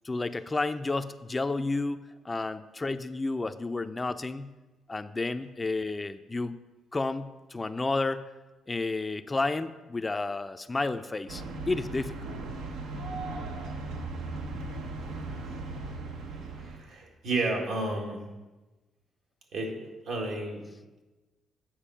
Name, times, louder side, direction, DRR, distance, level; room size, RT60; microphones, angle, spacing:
voice 1, 0.0-4.5 4.9-6.6 6.9-8.3 8.7-12.3, left 3 dB, 20° left, 11 dB, 0.3 m, -31 dB
sound 1, 11.3-16.8, right 2 dB, 90° right, 0.9 m, -37 dB
voice 2, 16.6-18.2 19.5-19.7 20.0-20.6, right 2 dB, 75° right, 0 dB, 1.8 m, -31 dB
8.8 x 4.4 x 5.7 m, 1.2 s
cardioid pair, 90°, 0 cm